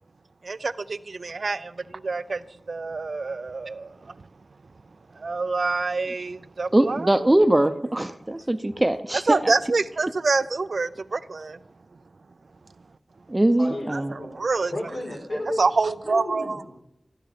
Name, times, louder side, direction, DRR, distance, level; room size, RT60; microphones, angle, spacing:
voice 1, 0.4-4.3 5.1-7.3 8.2-8.3 9.2-11.6 13.9-14.7 15.3-16.6, right 3 dB, 70° right, 0.4 m, -27 dB
voice 2, 6.7-9.4 13.3-14.1, right 1 dB, 20° right, 0.7 m, -21 dB
voice 3, 13.6-14.3 14.7-15.6 16.0-16.8, left 1 dB, 75° left, 4.8 m, -33 dB
15.0 x 10.0 x 5.1 m
wide cardioid pair, 75°, 0 cm